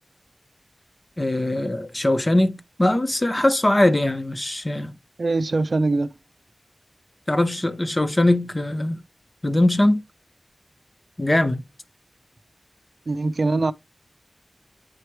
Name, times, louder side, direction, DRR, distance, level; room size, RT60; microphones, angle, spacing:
voice 1, 1.2-4.9 7.3-9.0 9.4-10.0 11.2-11.6, left 1 dB, 30° left, 0.7 m, -21 dB
voice 2, 5.2-6.1 13.1-13.7, right 3 dB, 70° right, 0.4 m, -22 dB
8.7 x 3.1 x 4.6 m
wide cardioid pair, 75°, 0 cm